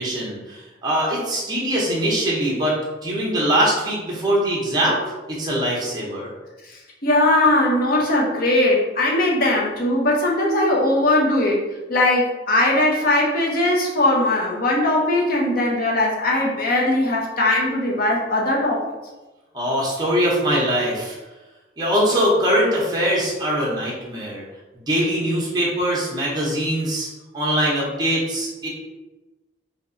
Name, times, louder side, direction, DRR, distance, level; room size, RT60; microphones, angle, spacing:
voice 1, 0.0-2.8 3.0-5.0 5.3-6.3 19.5-21.2 21.8-24.4 24.9-27.1 27.3-28.7, equal, 20° right, -5 dB, 0.8 m, -22 dB
voice 2, 6.6-11.6 11.9-18.8, left 1 dB, 50° left, -2 dB, 0.7 m, -20 dB
3.0 x 2.8 x 2.6 m, 1.1 s
head